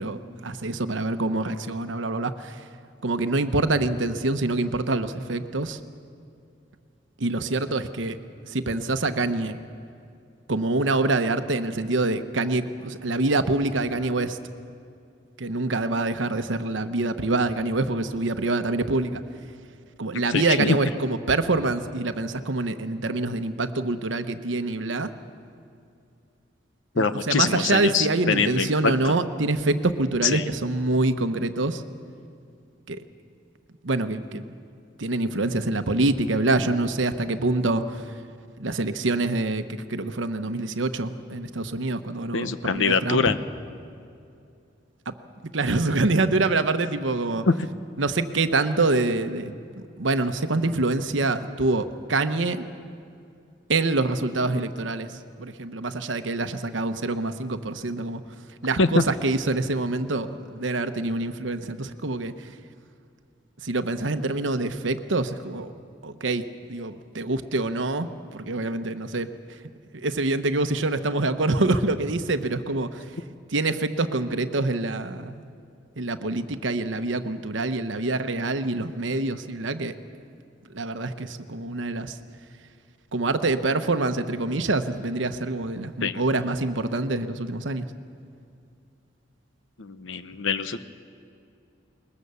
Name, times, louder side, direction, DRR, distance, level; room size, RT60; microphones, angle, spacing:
voice 1, 0.0-2.6 3.0-5.8 7.2-8.2 8.4-9.6 10.5-14.4 15.4-19.2 20.0-25.1 27.0-31.8 32.9-33.0 33.8-34.5 35.0-38.0 38.6-43.2 45.1-45.2 45.5-47.4 48.0-52.6 53.7-58.2 58.6-62.5 63.6-65.7 66.0-69.3 69.9-73.0 73.5-75.4 76.0-80.0 80.7-82.2 83.1-87.9, right 2 dB, 75° right, 9 dB, 1.0 m, -26 dB
voice 2, 20.3-20.8 26.9-28.7 29.0-29.1 30.2-30.4 42.3-43.4 47.5-47.6 58.8-59.0 86.0-86.2 89.8-90.8, left 4 dB, 85° left, 11 dB, 0.9 m, -24 dB
21.0 x 21.0 x 6.9 m, 2.5 s
head